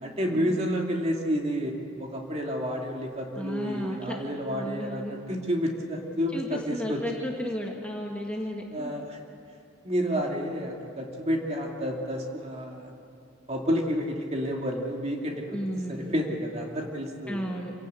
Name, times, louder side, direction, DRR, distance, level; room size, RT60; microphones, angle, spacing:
voice 1, 0.0-7.0 8.7-9.2 9.8-12.9 13.5-15.6 15.9-17.6, equal, 30° right, 0 dB, 2.6 m, -30 dB
voice 2, 3.4-4.2 4.5-5.1 6.3-8.9 15.5-16.1 17.3-17.7, equal, 5° left, -1 dB, 1.7 m, -33 dB
27.0 x 17.5 x 8.4 m, 2.6 s
head